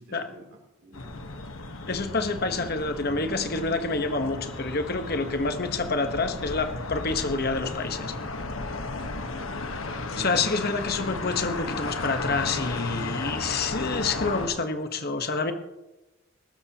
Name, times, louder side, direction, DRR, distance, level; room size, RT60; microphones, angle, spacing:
voice 1, 0.0-1.4 8.8-9.5 10.0-10.7, right 1 dB, 65° right, -2 dB, 3.7 m, -48 dB
sound 1, 0.9-14.5, left 3 dB, 80° left, 1.3 m, -34 dB
voice 2, 1.9-8.1 10.2-15.5, left 3 dB, 50° left, 7 dB, 1.1 m, -28 dB
21.0 x 13.0 x 2.9 m, 1.0 s
head